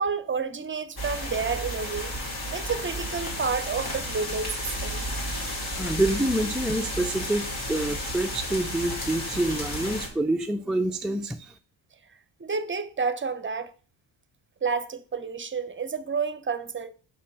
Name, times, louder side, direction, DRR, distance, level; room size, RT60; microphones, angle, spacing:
voice 1, 0.0-2.2 2.5-5.1 12.4-13.7 14.6-16.9, right 5 dB, 25° right, 0.7 m, -30 dB
sound 1, 1.0-10.1, equal, 50° left, 3.0 m, -32 dB
voice 2, 5.7-11.6, right 1 dB, ahead, 0.4 m, -27 dB
5.6 x 4.3 x 6.0 m
supercardioid pair, 70°, 46 cm